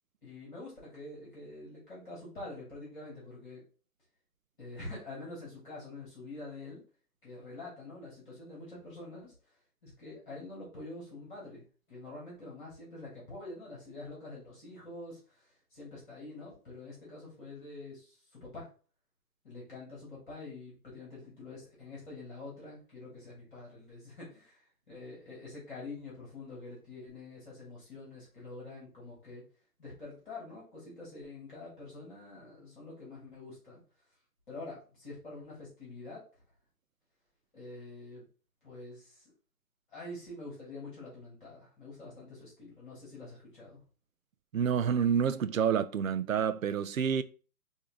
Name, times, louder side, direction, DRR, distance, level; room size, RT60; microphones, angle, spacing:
voice 1, 0.2-3.6 4.6-6.8 7.2-9.3 9.8-18.7 19.4-24.6 24.9-29.4 29.8-33.8 34.5-36.2 37.5-38.2 38.6-39.3 39.9-43.8, left 2 dB, 30° left, 2.4 m, -46 dB
voice 2, 44.5-47.2, right 7 dB, 60° right, 0.5 m, -28 dB
4.5 x 2.8 x 3.6 m
hypercardioid pair, 175°, 47 cm